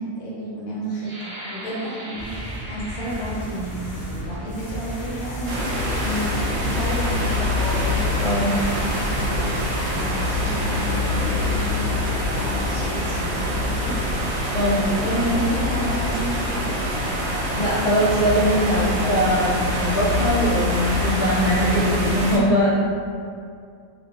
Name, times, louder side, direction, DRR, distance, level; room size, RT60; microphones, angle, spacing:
voice 1, 0.0-14.0 14.7-17.0, right 1 dB, 70° left, -7 dB, 1.0 m, -31 dB
sound 1, 1.0-6.6 7.3-7.5 7.9-8.4, right 1 dB, 90° right, 1.1 m, -41 dB
sound 2, 2.2-17.6, equal, 40° left, 0.6 m, -34 dB
sound 3, 5.5-22.4, left 1 dB, 70° right, 0.8 m, -25 dB
voice 2, 8.2-8.5 14.5-14.8 17.5-22.8, equal, 35° right, -13 dB, 0.6 m, -21 dB
2.5 x 2.2 x 2.4 m, 2.3 s
omnidirectional pair, 1.6 m